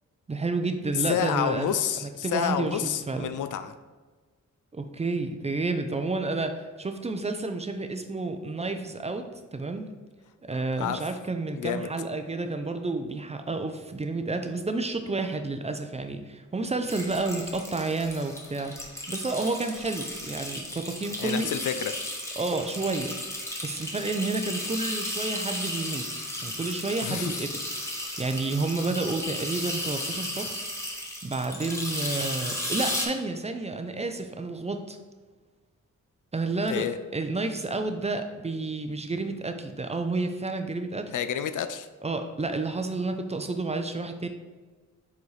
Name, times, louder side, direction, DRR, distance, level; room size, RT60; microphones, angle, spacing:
voice 1, 0.3-3.3 4.7-9.3 9.5-9.9 10.5-18.8 19.1-21.5 22.4-23.1 23.6-26.1 26.4-27.5 27.8-35.0 36.3-36.9 37.1-41.1 42.0-44.3, right 3 dB, 20° right, 6 dB, 0.4 m, -30 dB
voice 2, 1.1-3.7 10.8-11.0 11.5-11.9 21.2-21.9 27.0-27.4 36.7-37.0 41.1-41.9, left 9 dB, 75° left, 11 dB, 0.5 m, -29 dB
sound 1, 16.9-33.1, left 1 dB, 10° left, 1.0 m, -34 dB
7.0 x 4.1 x 3.2 m, 1.3 s
wide cardioid pair, 130°, 31 cm